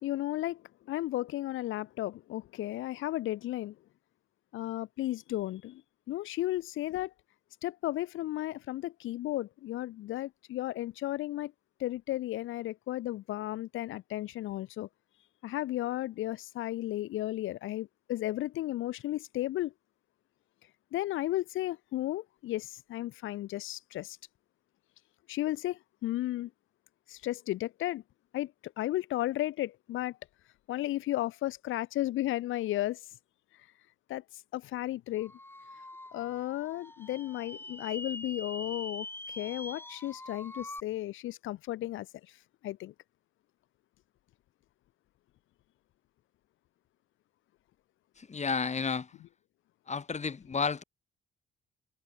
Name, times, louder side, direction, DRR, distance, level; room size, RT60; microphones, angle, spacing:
voice 1, 0.0-3.8 4.5-5.8 6.1-7.1 7.6-11.5 11.8-14.9 15.4-19.7 20.9-24.2 25.3-26.5 27.1-28.0 28.3-30.2 30.7-33.0 34.1-34.2 34.5-35.3 36.1-42.1 42.6-42.9, left 15 dB, 85° left, 1.4 m, -34 dB
sound 1, 35.2-40.8, left 2 dB, 10° left, 2.2 m, -44 dB
voice 2, 48.2-49.1 49.9-50.8, left 5 dB, 35° left, 4.3 m, -32 dB
cardioid pair, 90°, 20 cm